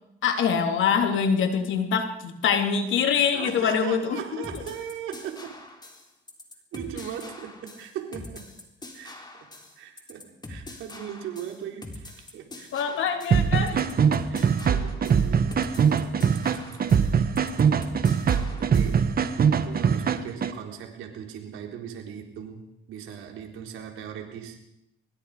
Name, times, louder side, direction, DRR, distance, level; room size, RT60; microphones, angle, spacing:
voice 1, 0.2-4.4 12.7-13.8, left 7 dB, 75° left, 5 dB, 3.4 m, -24 dB
voice 2, 3.3-5.5 6.7-8.5 8.9-9.2 9.8-12.8 13.7-13.9 14.3-16.1 18.3-19.1 19.5-24.6, right 9 dB, 90° right, 3 dB, 4.0 m, -39 dB
sound 1, 4.4-19.0, left 2 dB, 20° left, 4.0 m, -43 dB
sound 2, 13.3-20.5, right 7 dB, 50° right, 1.5 m, -22 dB
24.5 x 21.5 x 5.1 m, 0.79 s
cardioid pair, 90°, 20 cm